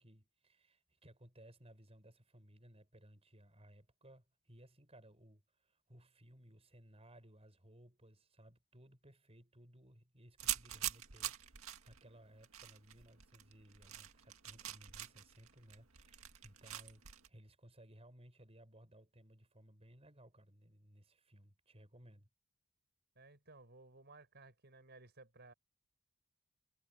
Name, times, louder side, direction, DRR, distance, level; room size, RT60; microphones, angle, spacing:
voice 1, 0.0-22.3, right 1 dB, 30° right, 5.9 m, -61 dB
sound 1, 10.4-17.3, right 12 dB, 75° right, 2.0 m, -45 dB
voice 2, 23.2-25.5, right 3 dB, 50° right, 5.6 m, -58 dB
head